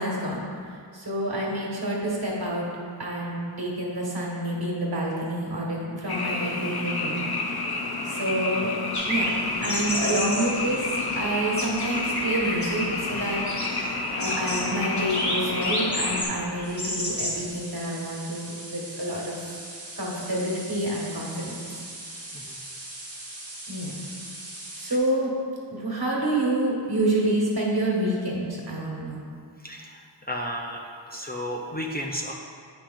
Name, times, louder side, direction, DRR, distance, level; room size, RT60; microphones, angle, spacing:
voice 1, 0.0-2.7 3.0-7.2 8.0-8.7 9.1-9.3 9.6-13.7 14.1-19.4 20.0-21.5 23.7-23.9 24.8-25.3 25.7-29.2, right 1 dB, 55° right, -3 dB, 1.7 m, -28 dB
Frog, 6.1-16.2, left 3 dB, 55° left, 0.8 m, -30 dB
sound 1, 8.9-17.5, left 1 dB, 40° left, 1.6 m, -31 dB
sound 2, 16.6-25.0, right 1 dB, 35° right, 1.3 m, -41 dB
voice 2, 29.6-30.8 31.1-32.3, equal, 20° left, -1 dB, 0.5 m, -33 dB
9.7 x 6.0 x 2.5 m, 2.1 s
wide cardioid pair, 80°, 45 cm